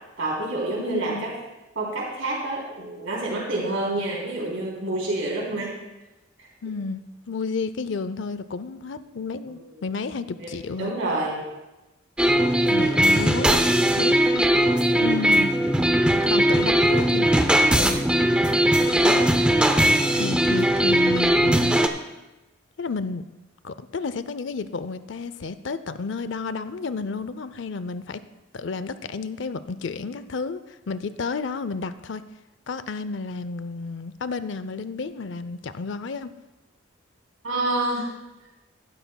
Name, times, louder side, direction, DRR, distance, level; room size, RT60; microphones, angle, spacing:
voice 1, 0.2-1.3 1.8-5.7 9.5-9.6 10.4-10.5 10.8-11.4 14.9-15.2 37.4-38.1, right 2 dB, 75° right, -4 dB, 3.5 m, -28 dB
voice 2, 0.8-1.3 6.6-10.9 12.7-14.5 15.0-15.5 16.2-17.3 17.7-18.1 18.8-19.4 20.2-21.8 22.8-23.3 23.6-28.2 28.5-32.2 32.7-36.3, left 4 dB, 65° left, 14 dB, 0.5 m, -31 dB
sound 1, 12.2-21.9, right 1 dB, 5° right, 0.5 m, -19 dB
15.5 x 12.5 x 2.3 m, 1.0 s
head